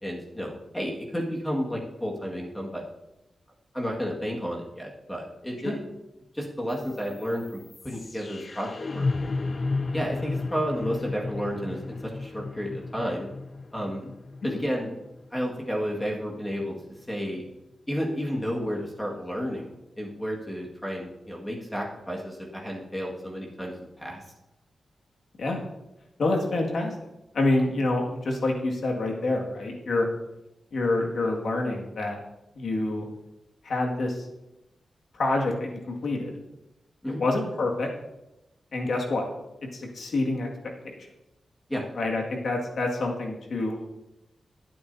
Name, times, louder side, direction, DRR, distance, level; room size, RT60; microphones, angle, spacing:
voice 1, 0.0-2.8 3.7-5.8 6.3-9.1 9.9-13.3 13.7-14.1 14.4-15.0 15.3-16.8 17.1-17.5 17.9-24.2 37.0-37.2 41.7-41.8, equal, 10° left, -2 dB, 1.9 m, -32 dB
sound 1, 6.7-16.7, left 3 dB, 35° left, 0.5 m, -34 dB
voice 2, 26.2-26.9 27.3-30.1 30.7-32.2 32.6-33.1 33.6-34.3 35.1-36.4 37.2-37.9 38.7-39.2 39.7-40.5 40.8-41.1 41.9-43.8, left 2 dB, 65° left, 0 dB, 2.0 m, -27 dB
22.0 x 8.6 x 2.8 m, 0.94 s
wide cardioid pair, 140°, 0 cm